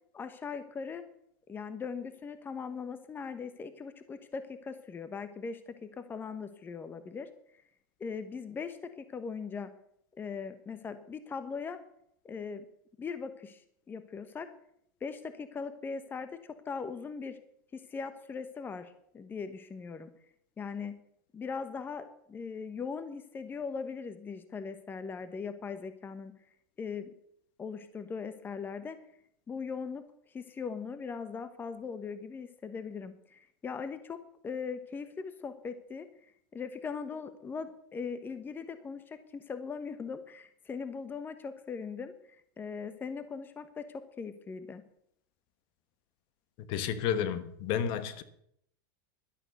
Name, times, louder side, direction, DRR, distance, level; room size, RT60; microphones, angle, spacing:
voice 1, 0.1-1.0 1.5-7.3 8.0-9.7 10.2-11.8 12.2-12.6 13.0-13.6 13.9-14.5 15.0-17.4 17.7-20.1 20.6-21.0 21.3-26.3 26.8-27.1 27.6-29.0 29.5-30.0 30.3-34.2 34.4-36.1 36.5-44.8, left 5 dB, 20° left, 1.1 m, -40 dB
voice 2, 46.6-48.2, left 8 dB, 50° left, 1.3 m, -31 dB
12.0 x 11.0 x 6.7 m
supercardioid pair, 125°, 11 cm